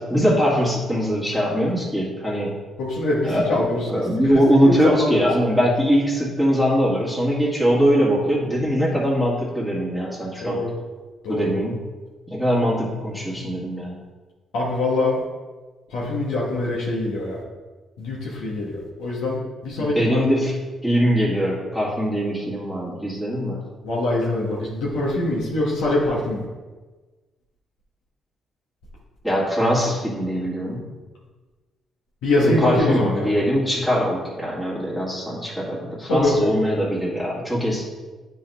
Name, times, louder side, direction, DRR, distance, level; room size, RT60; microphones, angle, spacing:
voice 1, 0.1-2.6 3.2-10.7 11.3-11.8 12.3-14.0 19.8-20.6 20.8-23.6 29.2-30.9 32.4-37.8, equal, 10° left, -6 dB, 2.0 m, -22 dB
voice 2, 2.8-3.9 4.2-4.4 4.6-5.5 10.4-10.7 11.2-11.5 14.5-15.2 15.9-17.4 18.0-20.2 23.8-26.4 32.2-33.3 36.1-36.5, left 2 dB, 90° left, -5 dB, 1.3 m, -23 dB
9.2 x 4.1 x 3.5 m, 1.3 s
cardioid pair, 90°, 0 cm